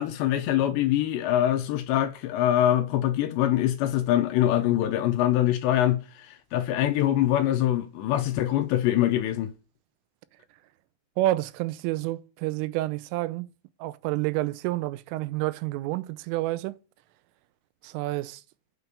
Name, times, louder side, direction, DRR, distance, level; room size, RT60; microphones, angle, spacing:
voice 1, 0.0-9.5, left 12 dB, 75° left, 2.7 m, -24 dB
voice 2, 11.2-13.5 13.8-16.8 17.8-18.4, right 17 dB, 90° right, 3.3 m, -29 dB
9.2 x 6.9 x 8.1 m
omnidirectional pair, 5.6 m